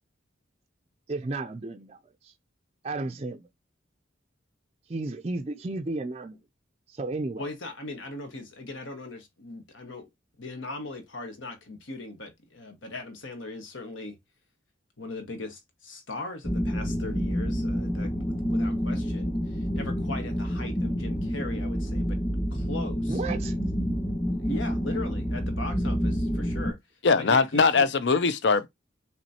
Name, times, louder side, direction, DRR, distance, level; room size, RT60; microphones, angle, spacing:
voice 1, 1.1-2.0 2.2-2.3 2.8-3.5 4.9-6.4 6.9-7.5 23.1-23.5, right 3 dB, 30° right, 0.4 m, -33 dB
voice 2, 7.4-10.1 10.4-14.2 15.0-22.2 22.5-23.2 24.4-26.8 27.2-27.8, left 2 dB, 80° left, 1.5 m, -39 dB
sound 1, 16.4-26.7, equal, 20° left, 1.5 m, -28 dB
voice 3, 27.0-28.7, left 4 dB, 60° left, 0.5 m, -21 dB
6.0 x 3.1 x 2.8 m
head